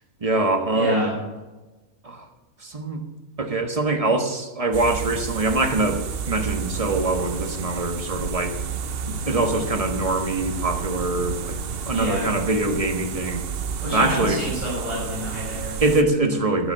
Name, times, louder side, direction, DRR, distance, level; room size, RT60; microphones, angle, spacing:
voice 1, 0.2-1.1 2.0-2.3 2.6-3.0 3.4-8.5 9.1-11.6 11.8-13.4 13.9-14.4 15.8-16.7, right 2 dB, 25° right, 5 dB, 1.3 m, -23 dB
voice 2, 0.7-1.1 11.9-12.3 13.8-15.8, equal, 20° left, -7 dB, 6.3 m, -28 dB
sound 1, 4.7-16.0, right 6 dB, 50° right, 0.8 m, -31 dB
11.0 x 9.8 x 8.7 m, 1.2 s
omnidirectional pair, 1.5 m